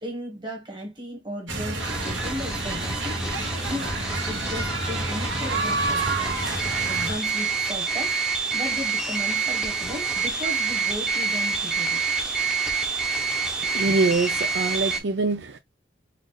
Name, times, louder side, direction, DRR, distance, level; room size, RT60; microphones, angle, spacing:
voice 1, 0.0-3.2 3.6-3.9 4.3-6.4 6.9-8.2 8.5-12.0, equal, 25° right, 1.3 m, -35 dB
sound 1, 1.5-7.2, right 3 dB, 80° right, 1.5 m, -28 dB
sound 2, 1.8-15.0, right 4 dB, 5° right, 0.7 m, -27 dB
voice 2, 13.4-15.6, right 3 dB, 60° right, 0.4 m, -25 dB
4.2 x 2.5 x 3.2 m
head